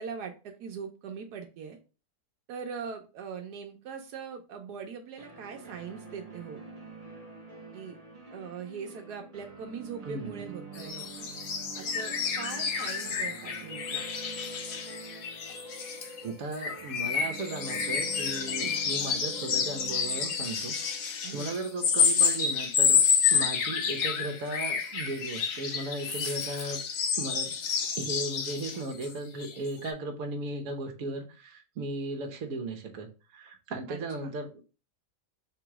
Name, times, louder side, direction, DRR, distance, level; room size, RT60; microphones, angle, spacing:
voice 1, 0.0-1.8 2.5-6.6 7.7-8.0 8.3-11.1 11.7-14.1 18.6-18.8 21.2-21.5 23.4-23.5 33.9-34.3, right 6 dB, 85° right, 4 dB, 1.3 m, -41 dB
sound 1, 5.2-21.9, right 3 dB, 35° right, 0.9 m, -46 dB
voice 2, 10.0-10.4 16.2-20.8 21.0-23.0 23.3-26.8 27.2-27.6 28.0-33.1 33.3-34.5, right 2 dB, 60° right, 2 dB, 1.3 m, -36 dB
sound 2, 10.8-16.2 16.5-29.1 29.4-29.6 29.8-29.9, left 6 dB, 80° left, 1.4 m, -29 dB
3.7 x 3.0 x 4.6 m, 0.32 s
omnidirectional pair, 1.7 m